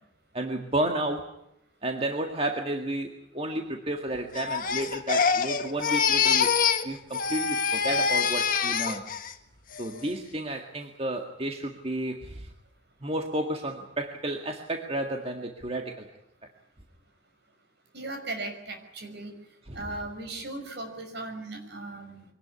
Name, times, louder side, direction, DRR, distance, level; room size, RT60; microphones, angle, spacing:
voice 1, 0.3-1.3 1.8-6.5 6.8-9.0 9.8-12.5 13.0-16.1 19.7-19.9, right 1 dB, 30° right, 3 dB, 1.9 m, -32 dB
Crying sobbing, 4.3-6.9 7.1-9.3 9.7-10.1, left 6 dB, 45° left, 1.7 m, -25 dB
voice 2, 17.9-19.3 19.7-22.2, right 2 dB, 60° right, 5 dB, 5.9 m, -37 dB
24.5 x 18.5 x 9.7 m, 0.79 s
head